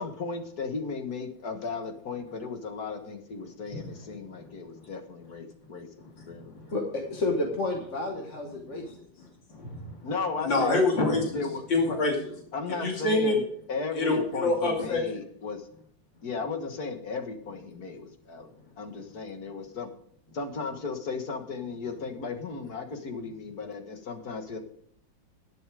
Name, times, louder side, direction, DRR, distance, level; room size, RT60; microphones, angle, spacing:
voice 1, 0.0-5.9 6.3-6.4 10.0-10.8 11.3-11.6 11.9-12.0 12.5-15.7 16.2-18.5 18.8-19.9 20.3-24.6, left 4 dB, 55° left, 5 dB, 2.0 m, -35 dB
voice 2, 3.7-4.1 4.7-4.9 6.0-6.7 8.8-8.9 9.5-10.1 10.4-11.4 11.7-12.1 12.8-13.4 14.0-15.0, left 2 dB, 85° left, 0 dB, 3.4 m, -27 dB
voice 3, 6.7-9.1, left 2 dB, 40° left, 1 dB, 1.8 m, -30 dB
11.0 x 11.0 x 4.9 m, 0.62 s
omnidirectional pair, 2.0 m